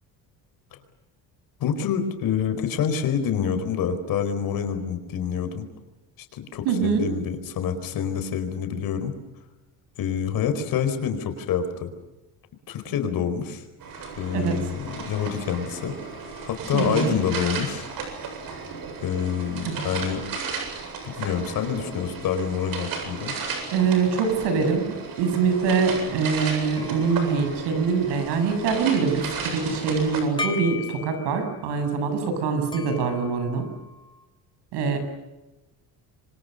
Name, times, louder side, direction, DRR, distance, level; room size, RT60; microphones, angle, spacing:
voice 1, 1.6-5.7 6.2-9.1 10.0-11.9 12.7-13.6 14.2-15.9 16.4-17.9 19.0-20.2 21.0-23.3, left 7 dB, 60° left, 8 dB, 4.7 m, -27 dB
voice 2, 6.6-7.1 14.3-14.6 16.7-17.2 19.7-19.8 23.7-33.7 34.7-35.0, right 5 dB, 85° right, 7 dB, 7.6 m, -24 dB
sound 1, 13.8-30.2, right 5 dB, 55° right, 8.0 m, -34 dB
sound 2, 26.7-28.4 30.4-31.6 32.7-34.2, left 4 dB, 10° left, 3.4 m, -37 dB
27.0 x 25.5 x 6.7 m, 1.1 s
cardioid pair, 145°, 40 cm